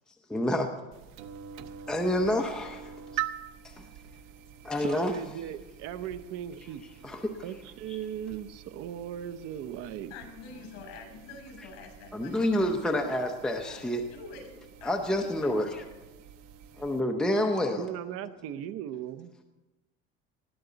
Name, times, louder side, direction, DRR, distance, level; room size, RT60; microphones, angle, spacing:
voice 1, 0.3-0.7 1.9-3.2 3.6-3.9 4.6-5.1 7.0-7.4 7.9-8.0 12.1-14.1 14.8-15.8 16.8-17.8, left 1 dB, ahead, 3 dB, 0.8 m, -28 dB
sound 1, 0.9-17.0, right 10 dB, 85° right, 1.0 m, -45 dB
voice 2, 4.8-6.8 7.4-10.1 17.8-19.4, right 10 dB, 50° right, 12 dB, 0.8 m, -38 dB
voice 3, 10.1-13.2 13.7-16.0 17.3-18.3, left 4 dB, 60° left, 4 dB, 6.4 m, -48 dB
20.0 x 14.0 x 4.0 m, 1.1 s
cardioid pair, 160°, 30 cm